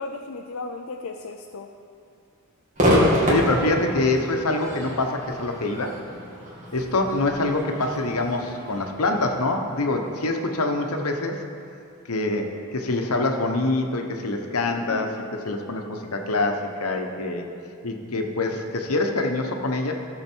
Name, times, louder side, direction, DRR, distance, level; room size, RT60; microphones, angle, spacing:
voice 1, 0.0-1.7 10.6-11.0 14.9-15.4, left 3 dB, 65° left, 3 dB, 0.5 m, -36 dB
Crowd / Fireworks, 2.8-10.1, equal, 35° right, 2.1 m, -27 dB
voice 2, 3.3-5.9 6.7-11.4 12.1-15.1 15.4-17.4 17.8-19.9, left 2 dB, 85° left, 3 dB, 1.0 m, -25 dB
14.5 x 6.5 x 4.6 m, 2.5 s
head